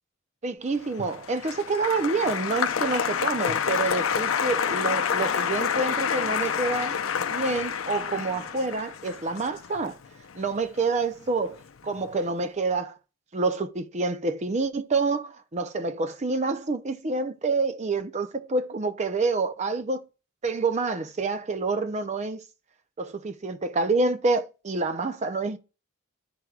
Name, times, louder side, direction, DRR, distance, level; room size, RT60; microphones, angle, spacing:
voice 1, 0.4-7.0 7.3-10.0 10.3-11.6 11.8-13.0 13.3-20.0 20.4-22.4 23.0-25.6, right 3 dB, 35° right, 0.5 m, -27 dB
Applause, 0.8-11.2 11.5-12.1, left 7 dB, 75° left, 0.6 m, -28 dB
13.5 x 4.6 x 2.4 m
head